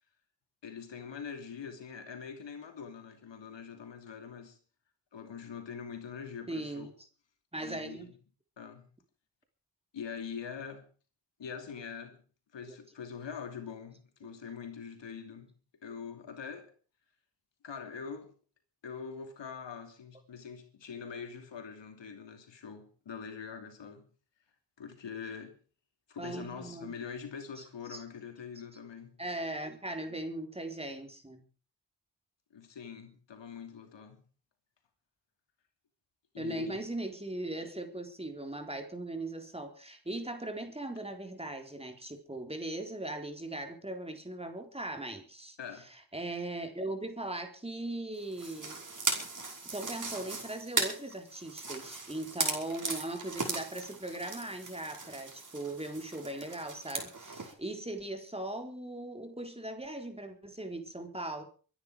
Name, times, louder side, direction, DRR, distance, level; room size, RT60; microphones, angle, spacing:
voice 1, 0.6-4.6 5.1-6.9 7.7-8.1 8.6-8.8 9.9-10.9 11.4-12.2 12.5-15.5 15.8-16.7 17.6-18.3 18.8-24.0 24.8-25.5 26.1-29.2 32.5-34.2 36.3-36.8 45.6-45.9, left 6 dB, 85° left, 2.9 m, -43 dB
voice 2, 6.5-6.9 7.5-8.1 26.2-26.9 27.6-28.0 29.2-31.4 36.4-45.6 45.9-49.1 49.7-61.4, right 2 dB, 15° right, 4.0 m, -39 dB
sound 1, 48.3-57.5, right 3 dB, 45° right, 5.4 m, -37 dB
24.0 x 10.5 x 4.8 m
cardioid pair, 65°, 42 cm